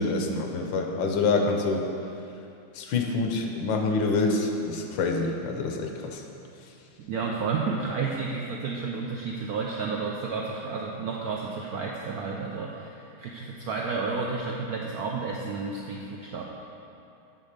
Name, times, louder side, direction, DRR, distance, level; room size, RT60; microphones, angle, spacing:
voice 1, 0.0-1.9 2.7-6.2, left 3 dB, 75° left, 3 dB, 1.4 m, -26 dB
voice 2, 7.0-16.4, right 4 dB, 75° right, -2 dB, 0.8 m, -31 dB
8.6 x 3.6 x 6.5 m, 2.8 s
omnidirectional pair, 2.2 m